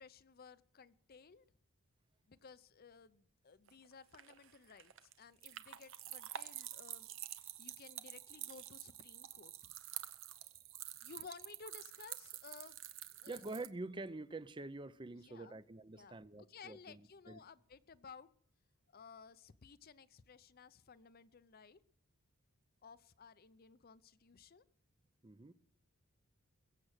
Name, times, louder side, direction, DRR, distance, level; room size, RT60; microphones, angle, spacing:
voice 1, 0.0-1.4 2.3-9.5 11.0-12.8 13.2-13.4 15.1-15.6 15.9-16.2 16.5-18.3 18.9-21.8 22.8-24.6, left 5 dB, 40° left, 0.6 m, -57 dB
sound 1, 3.7-13.7, right 12 dB, 60° right, 0.8 m, -49 dB
voice 2, 13.3-17.4 25.2-25.5, right 2 dB, 20° right, 0.5 m, -46 dB
22.0 x 7.6 x 6.5 m
head